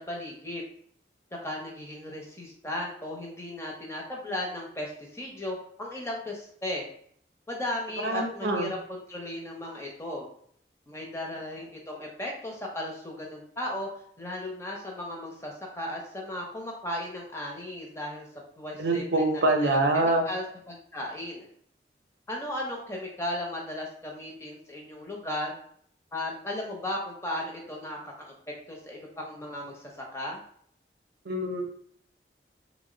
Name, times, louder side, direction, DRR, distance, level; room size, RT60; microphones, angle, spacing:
voice 1, 0.1-0.6 1.4-6.9 7.5-10.3 10.9-13.9 14.2-18.2 18.6-19.4 19.7-21.5 22.3-25.5 26.1-28.3 28.7-29.8 30.1-30.4, left 1 dB, 15° left, -1 dB, 0.6 m, -36 dB
voice 2, 8.0-8.7 18.8-20.3 31.3-31.7, right 2 dB, 75° right, 3 dB, 0.5 m, -25 dB
2.7 x 2.0 x 3.7 m, 0.63 s
head